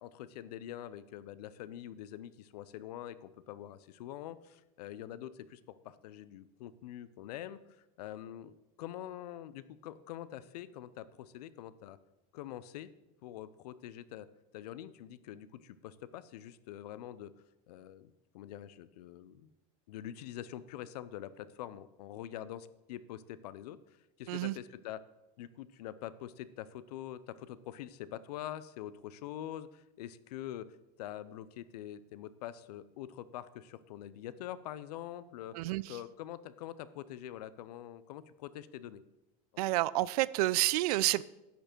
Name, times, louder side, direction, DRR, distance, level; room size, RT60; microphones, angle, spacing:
voice 1, 0.0-7.6 8.0-12.0 12.3-12.9 13.2-14.3 14.5-17.3 17.7-19.5 19.9-23.8 24.2-25.0 25.4-30.7 31.0-35.6 35.9-39.0, left 12 dB, 75° left, 16 dB, 0.6 m, -45 dB
voice 2, 35.5-36.0 39.6-41.2, right 17 dB, 70° right, 20 dB, 0.4 m, -29 dB
10.5 x 6.7 x 4.5 m, 0.95 s
supercardioid pair, 115°, 20 cm